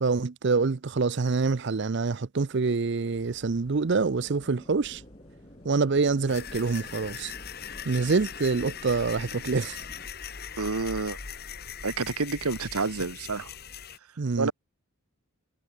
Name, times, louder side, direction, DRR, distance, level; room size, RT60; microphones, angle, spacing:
voice 1, 0.0-5.0 5.6-7.3 7.8-9.8 14.2-14.5, right 4 dB, 50° right, 0.5 m, -26 dB
sound 1, 3.1-11.2, left 1 dB, 75° left, 5.2 m, -58 dB
sound 2, 3.9-10.1, equal, 25° left, 7.3 m, -52 dB
sound 3, 6.3-14.0, left 7 dB, 45° left, 2.1 m, -40 dB
voice 2, 10.6-11.2 11.8-13.5 14.4-14.5, right 4 dB, 90° right, 1.2 m, -29 dB
head